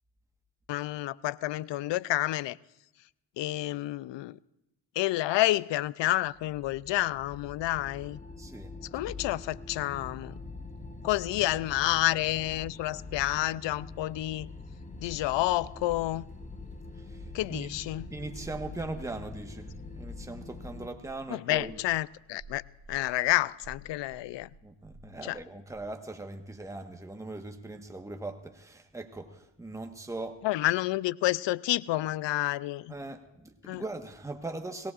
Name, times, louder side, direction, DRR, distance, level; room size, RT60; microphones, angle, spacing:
voice 1, 0.7-2.6 3.4-4.4 5.0-8.2 8.9-10.4 11.0-14.5 15.0-16.3 17.3-18.1 21.3-22.6 22.9-24.5 25.2-25.4 30.4-32.9 33.6-33.8, left 16 dB, 70° left, 0.5 m, -29 dB
sound 1, 6.3-20.9, left 3 dB, 15° left, 1.3 m, -44 dB
voice 2, 8.4-8.7 9.1-9.2 17.0-17.7 18.1-19.7 20.0-21.8 24.6-30.4 32.9-34.9, right 2 dB, 5° right, 1.3 m, -40 dB
sound 2, 15.4-25.9, equal, 45° right, 4.7 m, -53 dB
22.5 x 17.5 x 2.5 m
cardioid pair, 65°, 45 cm